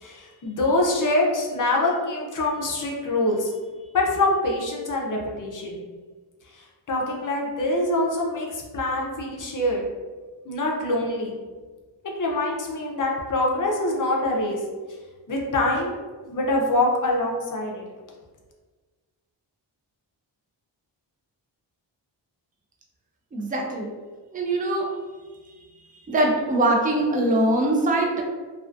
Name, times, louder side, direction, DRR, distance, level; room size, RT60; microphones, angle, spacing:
voice 1, 0.0-3.5 3.9-5.8 6.5-9.8 10.5-11.3 12.2-14.6 15.3-15.9 16.2-17.8, left 2 dB, 45° left, -1 dB, 0.5 m, -24 dB
voice 2, 23.3-23.9 24.3-24.9 26.1-28.2, right 1 dB, 20° right, -1 dB, 0.4 m, -22 dB
2.3 x 2.3 x 2.5 m, 1.4 s
wide cardioid pair, 110°, 44 cm